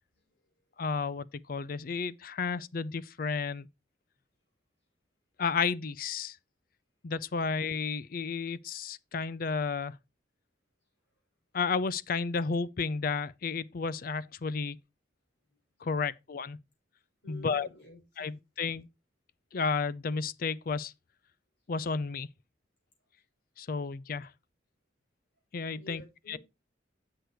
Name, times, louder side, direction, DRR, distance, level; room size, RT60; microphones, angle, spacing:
voice 1, 0.8-3.7 5.4-6.4 7.0-9.9 11.5-14.8 15.8-16.6 17.3-17.7 18.2-18.9 19.5-20.9 21.7-22.3 23.6-24.3 25.5-26.4, left 5 dB, 50° left, 0.5 m, -32 dB
voice 2, 17.2-18.4 25.7-26.4, left 1 dB, 70° left, 5.5 m, -51 dB
8.0 x 6.7 x 4.5 m
head